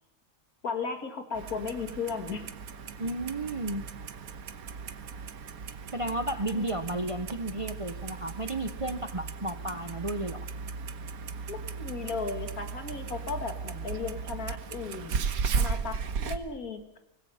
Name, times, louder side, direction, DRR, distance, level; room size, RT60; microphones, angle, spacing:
voice 1, 0.6-2.5 6.5-7.1 11.5-15.2 15.5-17.0, left 5 dB, 85° left, 7 dB, 2.5 m, -36 dB
Clock, 1.3-16.4, right 5 dB, 85° right, 1.6 m, -36 dB
voice 2, 3.0-3.8 5.9-10.5, right 1 dB, 30° right, 10 dB, 0.7 m, -33 dB
25.0 x 19.5 x 5.6 m, 0.85 s
omnidirectional pair, 1.5 m